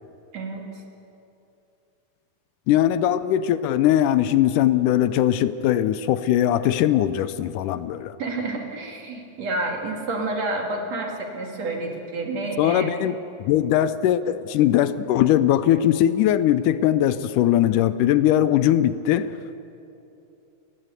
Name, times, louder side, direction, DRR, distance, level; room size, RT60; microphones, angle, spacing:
voice 1, 2.7-8.2 12.6-19.3, left 11 dB, 75° left, 13 dB, 2.0 m, -20 dB
voice 2, 8.2-12.9, right 2 dB, 50° right, 2 dB, 3.4 m, -29 dB
28.0 x 19.5 x 8.2 m, 2.8 s
omnidirectional pair, 4.1 m